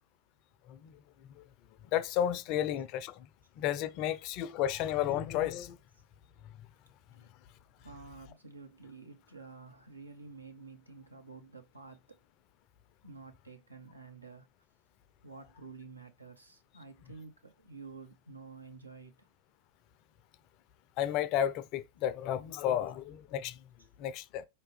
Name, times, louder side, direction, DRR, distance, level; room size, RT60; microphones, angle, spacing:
voice 1, 1.9-3.3 3.6-5.8 21.0-23.7 24.0-24.5, left 11 dB, 40° left, 0.4 m, -32 dB
voice 2, 3.8-4.2 7.1-7.3 7.8-12.2 13.0-14.5 15.2-19.1 23.8-23.9, right 4 dB, 80° right, 0.8 m, -50 dB
4.6 x 2.8 x 3.2 m
figure-of-eight pair, 90°, 0 cm